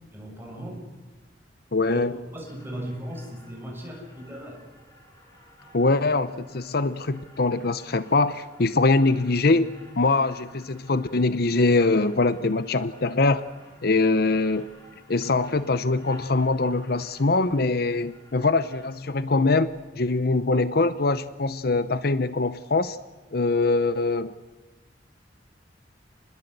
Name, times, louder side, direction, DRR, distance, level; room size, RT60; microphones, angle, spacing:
voice 1, 0.1-0.9 1.9-2.0 2.3-4.7, right 1 dB, 10° right, 0 dB, 7.0 m, -37 dB
voice 2, 1.7-2.1 5.7-9.7 10.0-13.4 13.8-14.7 15.1-19.7 20.0-23.0 23.3-24.3, left 3 dB, 60° left, 14 dB, 0.8 m, -23 dB
sound 1, 2.4-19.9, equal, 20° left, 7.1 m, -52 dB
29.0 x 21.0 x 8.1 m, 1.3 s
head